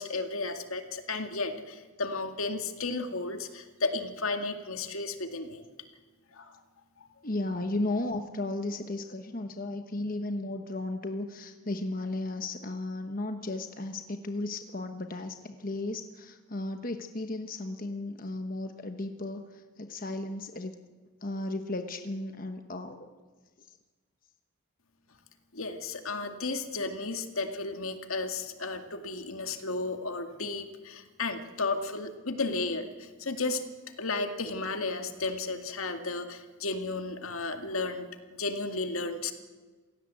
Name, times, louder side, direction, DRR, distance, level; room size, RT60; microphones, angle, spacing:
voice 1, 0.0-5.6 6.3-6.6 7.0-7.1 25.5-33.6 34.0-39.3, left 3 dB, 75° left, 6 dB, 2.2 m, -33 dB
voice 2, 7.2-20.7 21.2-23.1 23.6-23.8, left 2 dB, 40° left, 6 dB, 1.1 m, -35 dB
27.5 x 17.0 x 8.3 m, 1.4 s
head